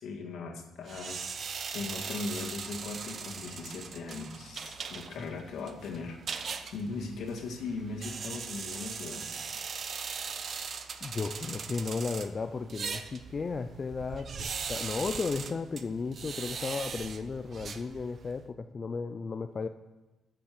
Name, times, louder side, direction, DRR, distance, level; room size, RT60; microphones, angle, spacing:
voice 1, 0.0-1.2 1.7-6.4 6.7-9.3, left 3 dB, 75° left, 1 dB, 1.8 m, -39 dB
sound 1, 0.9-18.4, right 5 dB, 50° right, 0.9 m, -40 dB
voice 2, 11.0-19.7, left 4 dB, 35° left, 8 dB, 0.5 m, -35 dB
9.3 x 7.0 x 6.7 m, 1.1 s
cardioid pair, 90°, 0 cm